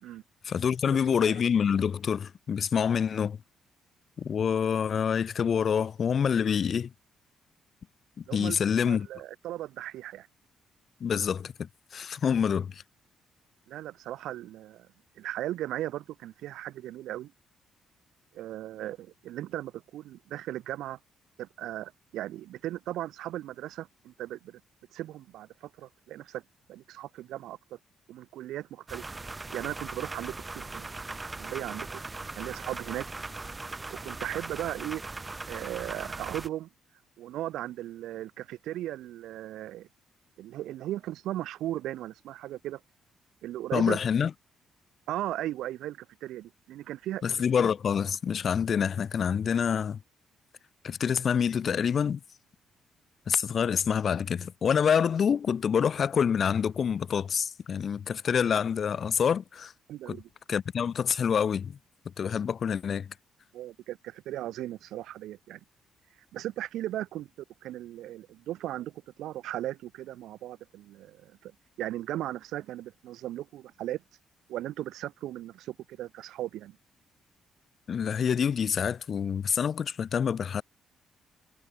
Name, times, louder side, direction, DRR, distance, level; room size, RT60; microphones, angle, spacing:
voice 1, 0.4-3.4 4.2-6.9 8.2-9.1 11.0-12.8 43.7-44.3 47.2-50.0 50.8-52.2 53.3-59.7 60.1-60.2 60.5-61.8 62.2-63.1 77.9-80.6, left 7 dB, 50° left, 2.9 m, -27 dB
voice 2, 8.8-10.3 13.7-14.9 15.2-17.3 18.3-21.0 21.4-24.6 24.9-26.4 26.7-27.6 28.1-29.0 29.5-30.9 31.4-32.0 32.4-33.1 33.9-35.0 35.5-36.7 37.2-39.9 40.4-42.8 43.4-44.0 45.1-47.2 59.9-60.3 63.5-65.6 66.3-67.3 67.6-71.5 71.8-74.0 74.5-76.8, right 13 dB, 85° right, 1.9 m, -37 dB
sound 1, 28.9-36.5, right 3 dB, 20° right, 3.7 m, -39 dB
cardioid pair, 90°, 0 cm